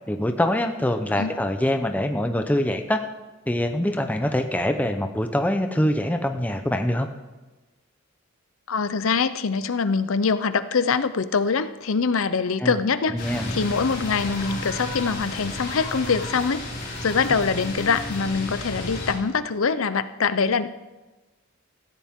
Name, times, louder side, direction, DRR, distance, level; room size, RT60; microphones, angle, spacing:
voice 1, 0.1-3.0 3.5-7.1 12.6-12.8 13.1-13.5 17.3-17.4, left 1 dB, 10° left, 6 dB, 0.7 m, -24 dB
voice 2, 8.7-16.7 17.0-20.7, left 5 dB, 75° left, 13 dB, 0.6 m, -24 dB
sound 1, 13.2-19.1, left 1 dB, 45° left, 5.8 m, -33 dB
16.5 x 15.0 x 3.7 m, 1.2 s
head